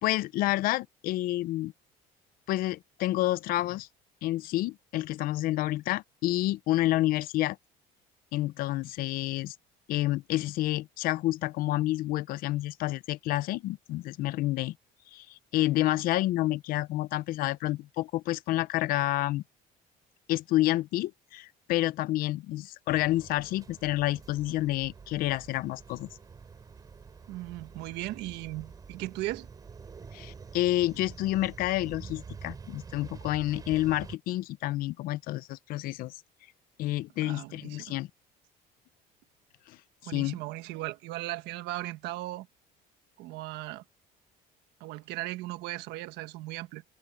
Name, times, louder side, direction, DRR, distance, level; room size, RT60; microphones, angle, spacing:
voice 1, 0.0-1.7 2.5-3.9 4.2-7.6 8.3-9.5 9.9-14.7 15.1-19.4 20.3-26.1 30.1-36.1 36.8-38.1 39.7-39.8 40.0-40.4, left 16 dB, 60° left, 0.6 m, -29 dB
sound 1, 22.9-34.2, right 5 dB, 20° right, 7.3 m, -47 dB
voice 2, 27.3-29.5 37.2-37.9 40.0-42.5 43.2-43.8 44.8-46.8, right 17 dB, 90° right, 1.4 m, -37 dB
cardioid pair, 175°, 17 cm